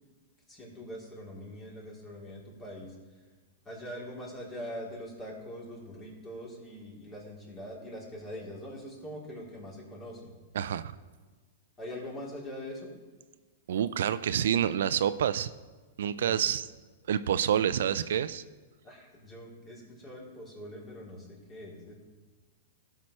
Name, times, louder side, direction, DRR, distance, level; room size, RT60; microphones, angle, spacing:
voice 1, 0.5-2.9 3.6-10.3 11.8-12.9 16.2-16.5 18.8-21.9, equal, 25° left, -3 dB, 3.2 m, -43 dB
voice 2, 10.5-10.9 13.7-15.5 16.0-16.6 17.1-18.4, right 9 dB, 70° right, 15 dB, 0.4 m, -28 dB
17.0 x 5.9 x 3.2 m, 1.3 s
hypercardioid pair, 110°, 0 cm